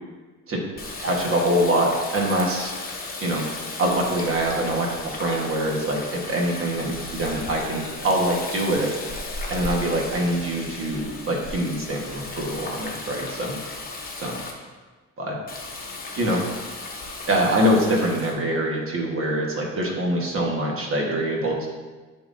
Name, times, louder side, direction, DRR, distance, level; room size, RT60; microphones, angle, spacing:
Water tap faucet, 0.8-14.5 15.5-18.3, left 3 dB, 30° left, 1.0 m, -35 dB
voice 1, 0.9-2.7 3.2-3.4 3.8-6.0 6.3-8.9 9.5-13.5 14.2-14.4 15.2-15.4 16.2-16.4 17.3-21.7, right 1 dB, 45° right, -1 dB, 1.3 m, -24 dB
10.0 x 3.9 x 2.6 m, 1.3 s
cardioid pair, 130°, 29 cm